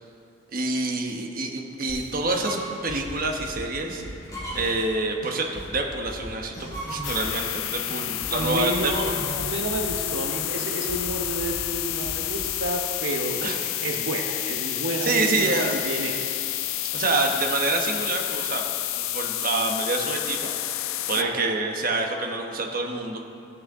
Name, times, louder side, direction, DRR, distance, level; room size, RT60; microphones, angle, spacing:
voice 1, 0.5-2.6 2.8-4.0 4.5-9.1 13.4-13.7 15.0-15.8 16.9-18.6 19.0-20.5 21.1-23.2, right 3 dB, 45° right, 1 dB, 1.1 m, -27 dB
sound 1, 1.9-2.3 2.5-4.9 5.2-7.6 7.9-10.2 10.5-12.5, equal, 35° left, 2.4 m, -40 dB
sound 2, 2.3-2.9 3.4-3.5 4.2-4.9 6.4-7.4 8.8-9.5, right 1 dB, 15° left, 2.2 m, -36 dB
sound 3, 7.0-21.2, left 13 dB, 90° left, 0.5 m, -30 dB
voice 2, 8.3-9.1 9.3-13.4 13.8-16.2 21.1-21.6, right 1 dB, 90° right, 1 dB, 0.9 m, -30 dB
14.0 x 8.7 x 3.6 m, 2.5 s
head